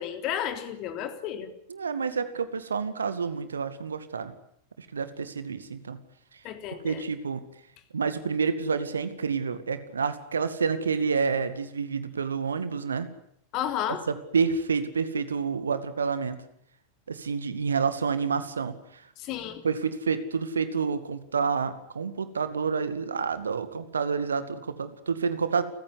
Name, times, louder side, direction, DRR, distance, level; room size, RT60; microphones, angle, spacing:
voice 1, 0.0-1.5 6.4-7.1 13.5-14.0 19.2-19.6, left 10 dB, 40° left, 8 dB, 3.5 m, -32 dB
voice 2, 1.7-4.3 4.8-6.0 6.8-7.4 7.9-13.1 14.1-16.4 17.1-19.0 19.6-25.6, right 5 dB, 70° right, 12 dB, 2.2 m, -29 dB
30.0 x 15.5 x 9.9 m, 0.71 s
figure-of-eight pair, 90°, 0 cm